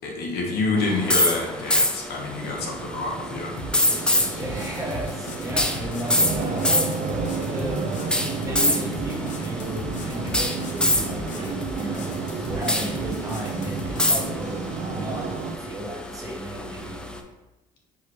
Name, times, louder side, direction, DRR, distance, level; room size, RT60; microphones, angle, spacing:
voice 1, 0.0-3.5, left 3 dB, 70° left, 0 dB, 1.0 m, -27 dB
sound 1, 0.8-17.2, left 1 dB, 5° left, 0.3 m, -27 dB
sound 2, 2.3-15.6, right 4 dB, 45° right, 0.5 m, -32 dB
sound 3, 3.6-14.3, left 2 dB, 45° left, 0.8 m, -38 dB
voice 2, 4.3-6.6 7.4-7.8 8.3-14.6 14.9-15.3 15.5-17.0, right 1 dB, 20° right, -2 dB, 1.1 m, -34 dB
4.8 x 2.9 x 3.2 m, 1.1 s
cardioid pair, 110°, 17 cm